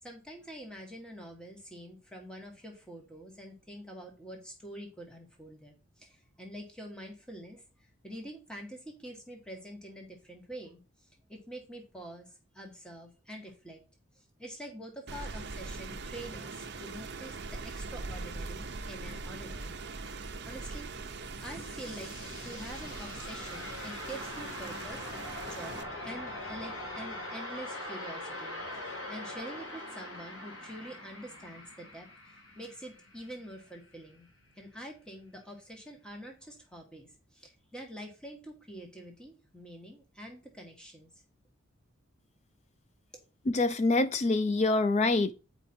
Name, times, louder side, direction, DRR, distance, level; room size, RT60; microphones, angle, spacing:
voice 1, 0.0-13.8 14.1-20.9 21.4-22.1 22.4-25.1 25.4-34.3 34.5-41.1, right 1 dB, 5° left, 1.4 m, -46 dB
Rain, 15.1-25.8, right 3 dB, 50° right, 0.8 m, -41 dB
sound 1, 21.1-33.8, left 1 dB, 70° left, 2.4 m, -42 dB
voice 2, 43.5-45.3, left 2 dB, 30° left, 0.4 m, -25 dB
9.1 x 5.0 x 4.3 m
head